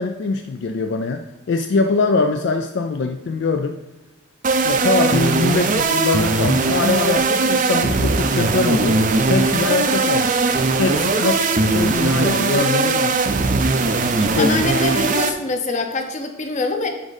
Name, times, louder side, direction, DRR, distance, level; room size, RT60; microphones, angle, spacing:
voice 1, 0.0-3.8 4.6-10.4 10.8-13.2 14.2-14.8, left 4 dB, 60° left, 6 dB, 0.3 m, -22 dB
sound 1, 4.4-15.3, right 3 dB, 40° right, 0.5 m, -19 dB
voice 2, 14.4-16.9, left 2 dB, 35° left, 5 dB, 0.7 m, -24 dB
9.9 x 3.6 x 4.1 m, 1.1 s
head